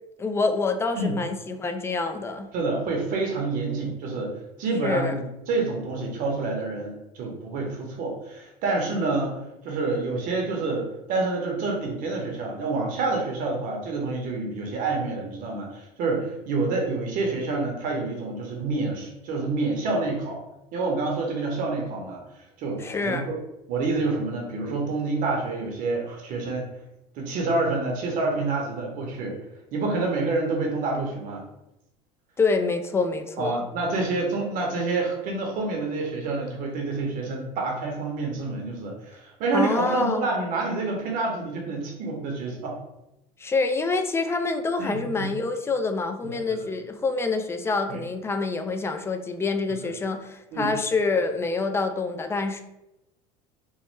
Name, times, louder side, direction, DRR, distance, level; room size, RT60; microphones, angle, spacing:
voice 1, 0.2-2.5 4.8-5.1 22.8-23.3 32.4-33.6 39.5-40.3 43.4-52.6, left 3 dB, 15° left, 6 dB, 0.3 m, -26 dB
voice 2, 2.5-9.4 9.6-20.4 20.7-23.4 23.7-26.7 27.1-29.4 29.7-31.4 33.4-42.8 44.8-45.3 46.2-46.6 47.9-48.0 50.5-50.7, right 3 dB, 60° right, 1 dB, 0.8 m, -28 dB
3.0 x 2.1 x 3.2 m, 0.90 s
supercardioid pair, 110°, 16 cm